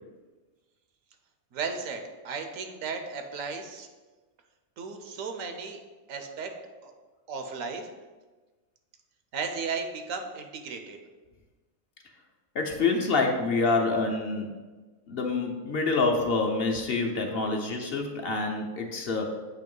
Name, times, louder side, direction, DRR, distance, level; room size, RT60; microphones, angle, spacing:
voice 1, 1.5-3.9 4.8-5.8 6.1-6.5 6.8-6.9 7.3-7.9 9.3-11.0, right 5 dB, 80° right, 6 dB, 1.1 m, -35 dB
voice 2, 12.5-14.5 15.1-19.4, left 3 dB, 55° left, 2 dB, 0.8 m, -27 dB
7.7 x 3.0 x 5.3 m, 1.3 s
omnidirectional pair, 1.4 m